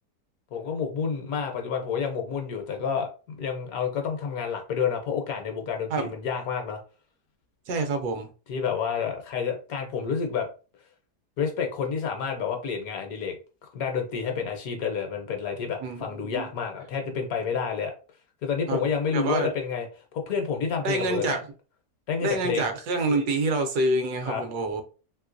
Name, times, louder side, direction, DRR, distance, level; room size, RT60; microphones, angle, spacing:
voice 1, 0.5-6.8 8.5-10.5 11.4-13.4 13.7-17.9 18.4-19.9 20.1-21.4 22.1-22.7 24.3-24.4, left 6 dB, 65° left, 1.0 m, -29 dB
voice 2, 7.7-8.3 15.8-16.5 18.7-18.8 19.1-19.5 20.8-21.4 22.2-24.8, right 2 dB, 75° right, 1.1 m, -27 dB
3.2 x 2.9 x 2.5 m
omnidirectional pair, 1.8 m